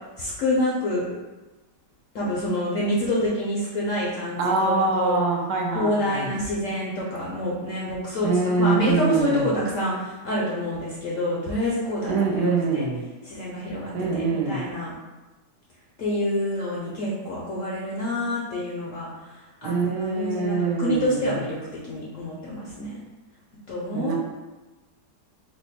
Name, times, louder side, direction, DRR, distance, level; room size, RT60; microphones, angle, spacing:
voice 1, 0.2-1.1 2.1-5.2 5.7-12.9 13.2-14.9 16.0-21.6 21.8-23.0 23.7-24.1, left 1 dB, 65° left, -6 dB, 0.8 m, -27 dB
voice 2, 4.4-6.3 8.2-9.5 12.1-13.0 13.9-14.6 19.6-21.4 23.9-24.1, right 3 dB, 75° right, 0 dB, 1.1 m, -24 dB
2.9 x 2.2 x 4.1 m, 1.2 s
omnidirectional pair, 1.9 m